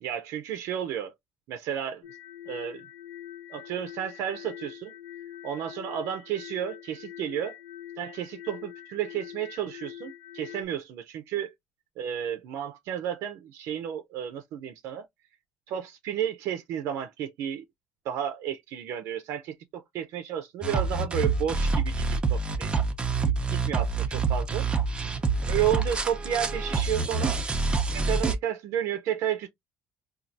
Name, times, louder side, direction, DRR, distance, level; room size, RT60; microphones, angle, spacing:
voice 1, 0.0-1.1 1.5-2.0 2.5-2.9 3.5-4.9 5.4-7.6 8.0-11.5 12.0-15.1 15.7-17.6 18.1-22.7 23.2-23.9 24.3-24.7 25.4-27.4 27.9-29.5, right 10 dB, 80° right, 0.5 m, -32 dB
sound 1, 2.0-10.7, left 11 dB, 65° left, 1.1 m, -44 dB
sound 2, 20.6-28.3, right 4 dB, 20° right, 0.6 m, -27 dB
4.3 x 2.3 x 2.6 m
cardioid pair, 130°, 5 cm